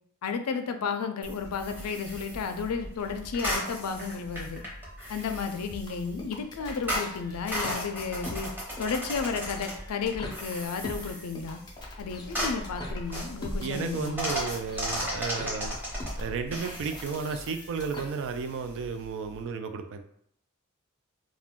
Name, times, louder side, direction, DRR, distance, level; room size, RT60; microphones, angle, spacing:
voice 1, 0.2-4.6 5.1-8.5 8.8-11.6 12.0-14.3, left 5 dB, 90° left, 7 dB, 0.4 m, -33 dB
sound 1, 1.2-19.4, equal, 10° right, 0.8 m, -36 dB
sound 2, 5.7-18.0, left 1 dB, 20° left, 0.5 m, -43 dB
voice 2, 13.6-15.8 16.2-20.0, right 5 dB, 60° right, 7 dB, 0.3 m, -33 dB
2.4 x 2.2 x 3.5 m, 0.71 s
head